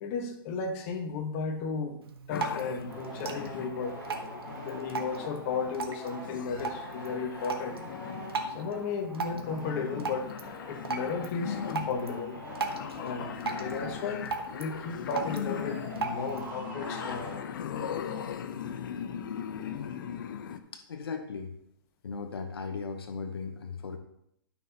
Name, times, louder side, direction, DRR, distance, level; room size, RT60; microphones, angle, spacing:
voice 1, 0.0-2.0 2.3-4.0 4.5-7.8 8.5-10.3 10.7-12.4 12.6-17.2, left 5 dB, 35° left, 3 dB, 1.3 m, -34 dB
Drip, 2.0-16.5, right 3 dB, 80° right, 1.3 m, -39 dB
sound 1, 2.3-20.6, left 8 dB, 60° left, 0.8 m, -39 dB
sound 2, 2.9-17.9, right 1 dB, 15° right, 3.2 m, -45 dB
voice 2, 20.7-21.5 22.0-24.0, left 5 dB, 80° left, 7 dB, 0.9 m, -37 dB
13.0 x 5.9 x 2.9 m, 0.76 s
hypercardioid pair, 140°, 13 cm